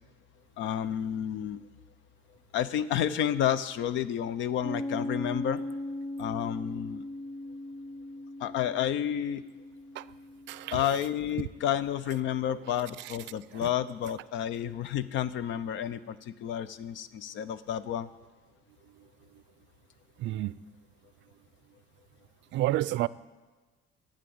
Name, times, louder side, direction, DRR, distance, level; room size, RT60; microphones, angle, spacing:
voice 1, 0.6-1.6 2.5-5.6 6.2-7.0 8.4-9.4 10.7-18.1, left 10 dB, 65° left, 0.6 m, -30 dB
Piano, 4.6-11.9, left 1 dB, 45° left, 1.5 m, -39 dB
voice 2, 10.5-10.9 12.7-13.2 13.5-13.7 18.9-19.1 19.3-19.4 20.2-20.6 22.5-23.1, right 15 dB, 65° right, 0.4 m, -31 dB
12.0 x 8.8 x 7.8 m
cardioid pair, 165°, 21 cm